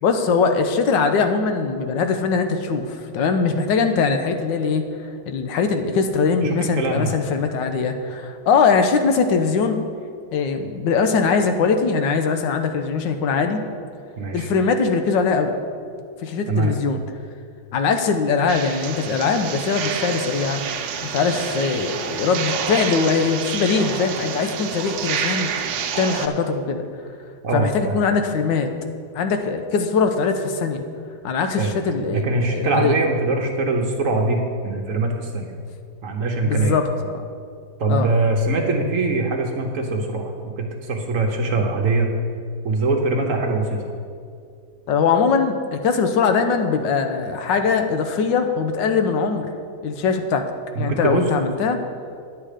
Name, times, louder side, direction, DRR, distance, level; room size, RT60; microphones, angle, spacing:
voice 1, 0.0-4.9 5.3-9.8 10.3-13.6 14.3-15.6 16.2-17.0 17.7-20.6 21.0-25.5 26.0-26.8 27.5-28.7 29.1-30.8 31.2-33.0 36.4-37.2 37.9-38.1 44.9-49.5 49.8-50.5 50.8-51.8, left 5 dB, 85° left, 6 dB, 1.4 m, -21 dB
voice 2, 6.4-7.2 14.2-14.5 16.5-16.8 27.4-28.0 31.6-31.7 32.1-35.5 36.0-36.8 37.8-42.1 42.6-43.8 50.7-51.3, right 2 dB, 55° right, 2 dB, 1.1 m, -22 dB
sound 1, 18.5-26.3, right 7 dB, 90° right, 1.4 m, -28 dB
10.5 x 7.4 x 5.0 m, 2.3 s
omnidirectional pair, 1.9 m